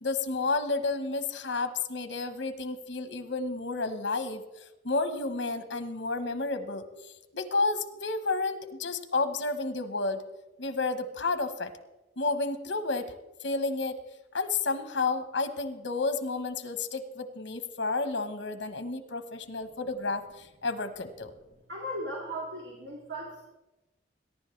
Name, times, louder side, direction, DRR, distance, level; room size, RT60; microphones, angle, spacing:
voice 1, 0.0-4.4 4.8-6.9 7.3-10.2 10.6-11.7 12.2-13.1 13.4-14.0 14.3-21.3, left 3 dB, 75° left, 9 dB, 1.1 m, -31 dB
voice 2, 21.7-23.4, equal, 70° right, -3 dB, 2.1 m, -37 dB
21.5 x 10.5 x 3.3 m, 1.0 s
head